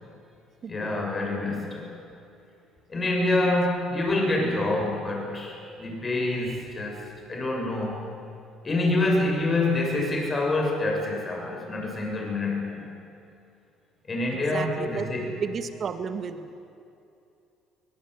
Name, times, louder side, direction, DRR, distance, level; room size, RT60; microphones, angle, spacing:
voice 1, 0.7-2.0 2.9-8.1 8.6-12.8 14.1-15.3, left 2 dB, 30° left, 1 dB, 7.0 m, -26 dB
voice 2, 6.3-6.6 14.3-16.6, right 6 dB, 45° right, 9 dB, 1.8 m, -34 dB
21.5 x 19.0 x 9.5 m, 2.6 s
cardioid pair, 95°, 0 cm